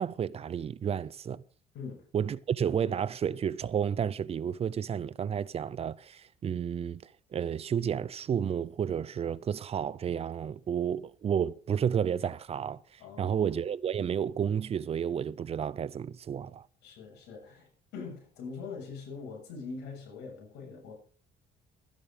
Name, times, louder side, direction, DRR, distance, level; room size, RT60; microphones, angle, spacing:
voice 1, 0.0-1.4 2.1-16.7, right 8 dB, 35° right, 0.7 m, -31 dB
voice 2, 13.0-13.5 16.8-20.9, left 4 dB, 80° left, 7.0 m, -43 dB
13.0 x 10.5 x 5.2 m
cardioid pair, 110°, 17 cm